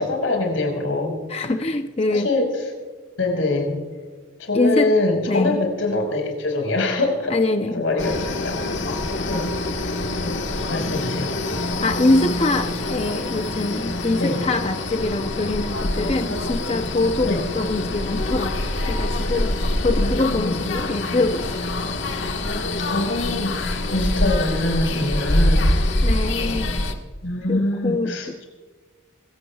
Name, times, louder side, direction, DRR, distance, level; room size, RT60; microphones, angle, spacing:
voice 1, 0.0-1.5 2.1-2.6 3.2-3.8 4.4-7.3 7.7-8.6 9.3-9.5 10.2-10.4 10.7-11.3 14.1-14.4 17.2-17.4 20.0-20.6 22.8-25.7 27.2-28.3, left 2 dB, 90° left, 2 dB, 5.0 m, -24 dB
voice 2, 1.3-2.3 4.5-4.9 5.3-5.7 7.3-7.8 11.6-18.5 18.9-21.9 26.0-26.7 27.5-28.4, left 2 dB, 30° left, 6 dB, 0.6 m, -24 dB
sound 1, 8.0-26.9, left 1 dB, 70° left, 1.5 m, -25 dB
26.0 x 15.5 x 2.3 m, 1.4 s
head